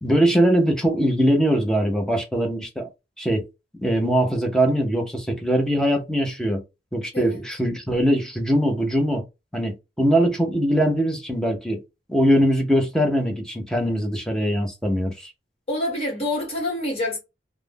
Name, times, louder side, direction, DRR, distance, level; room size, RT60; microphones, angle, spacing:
voice 1, 0.0-2.9 3.2-3.4 3.8-6.6 6.9-9.2 9.5-11.8 12.1-15.3, equal, 5° left, 0.6 m, -21 dB
voice 2, 15.7-17.2, left 1 dB, 35° left, 1.4 m, -26 dB
2.4 x 2.1 x 3.3 m
head